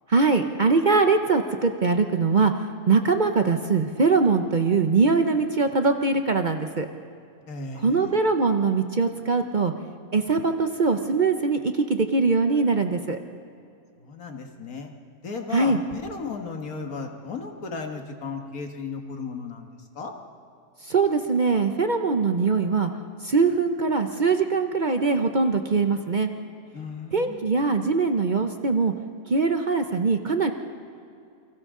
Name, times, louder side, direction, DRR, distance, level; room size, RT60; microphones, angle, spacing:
voice 1, 0.1-2.5 2.9-6.9 7.8-9.7 10.1-13.2 15.5-15.8 20.9-22.9 23.2-26.3 27.1-28.9 29.3-30.5, right 4 dB, 40° right, 6 dB, 0.8 m, -22 dB
voice 2, 7.5-8.2 14.0-14.9 15.2-20.1 26.7-27.5, left 4 dB, 80° left, 3 dB, 2.1 m, -35 dB
29.0 x 24.5 x 3.8 m, 2.4 s
omnidirectional pair, 1.5 m